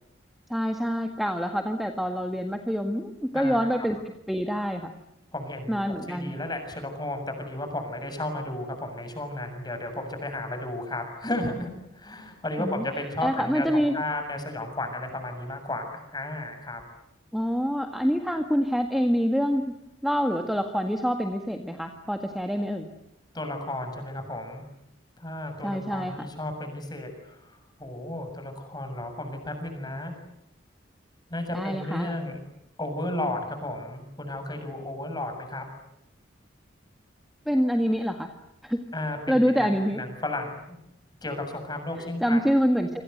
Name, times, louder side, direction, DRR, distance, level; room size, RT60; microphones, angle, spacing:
voice 1, 0.5-4.0 4.3-4.9 5.7-6.3 12.6-12.8 13.2-13.9 17.3-19.6 20.0-22.9 25.6-26.3 31.5-32.1 37.5-38.3 38.6-38.8 39.3-40.0 42.0-42.9, equal, ahead, 4 dB, 1.8 m, -26 dB
voice 2, 3.3-3.7 5.3-16.8 23.3-24.6 25.2-30.1 31.3-32.4 32.8-35.7 38.9-40.8 41.2-42.5, left 1 dB, 20° left, 6 dB, 7.2 m, -33 dB
28.5 x 26.0 x 8.0 m, 0.79 s
head